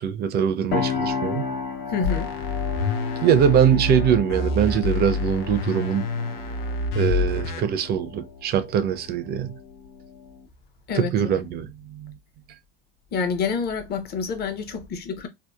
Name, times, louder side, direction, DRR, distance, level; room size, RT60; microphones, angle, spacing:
voice 1, 0.0-1.5 3.2-6.1 6.9-9.6 10.9-12.1, right 8 dB, 35° right, 0.4 m, -22 dB
sound 1, 0.7-10.4, left 6 dB, 65° left, 1.0 m, -33 dB
voice 2, 1.9-2.3 10.9-11.1 13.1-15.3, left 5 dB, 35° left, 0.7 m, -27 dB
sound 2, 2.0-7.6, left 3 dB, 80° left, 0.7 m, -27 dB
2.7 x 2.1 x 2.2 m
hypercardioid pair, 105°, 29 cm